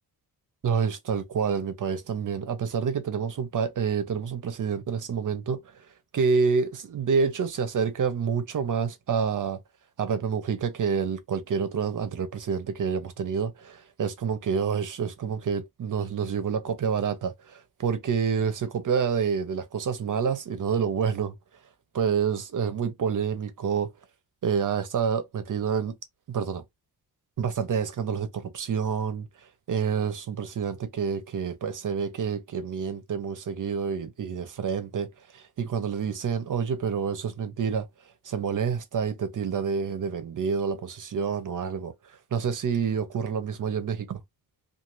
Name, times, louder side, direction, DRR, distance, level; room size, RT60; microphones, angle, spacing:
voice 1, 0.6-5.6 6.1-9.6 10.0-21.3 21.9-23.9 24.4-25.9 26.3-26.6 27.4-29.3 29.7-37.9 38.2-44.2, right 6 dB, 55° right, 0.7 m, -28 dB
2.5 x 2.5 x 3.1 m
cardioid pair, 105°, 39 cm